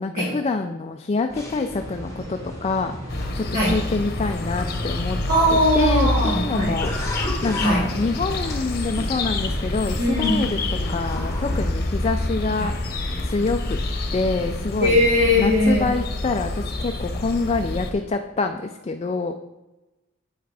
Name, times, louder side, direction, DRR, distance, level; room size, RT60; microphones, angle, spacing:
voice 1, 0.0-5.2 5.5-6.9 7.4-12.7 13.2-13.8 14.1-15.0 15.3-19.3, left 3 dB, 30° left, 5 dB, 0.4 m, -26 dB
sound 1, 1.3-11.8, left 1 dB, 15° left, 1.4 m, -36 dB
sound 2, 1.7-14.6, equal, 65° right, 2.1 m, -40 dB
sound 3, 3.1-17.9, left 2 dB, 50° left, 0.9 m, -27 dB
voice 2, 5.3-6.8 7.6-7.8 10.0-10.5 12.6-12.7 14.8-15.9, left 1 dB, 50° right, -10 dB, 2.7 m, -20 dB
7.3 x 5.8 x 4.8 m, 1.0 s
head